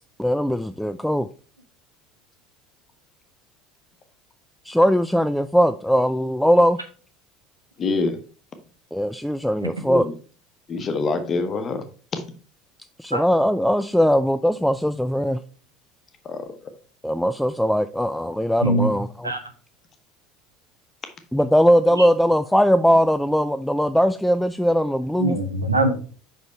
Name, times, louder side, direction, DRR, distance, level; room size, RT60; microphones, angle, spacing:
voice 1, 0.2-1.3 4.7-6.8 8.9-10.1 13.0-15.4 17.0-19.1 21.3-25.4, equal, ahead, 0.3 m, -20 dB
voice 2, 7.8-8.2 9.8-10.1 10.7-11.8 12.1-12.2 16.2-16.4, left 3 dB, 30° left, 1.2 m, -25 dB
voice 3, 18.6-18.9 19.2-19.4 21.9-22.1 25.2-26.0, right 1 dB, 85° right, 0.9 m, -22 dB
5.6 x 5.3 x 4.4 m
figure-of-eight pair, 70°, 0 cm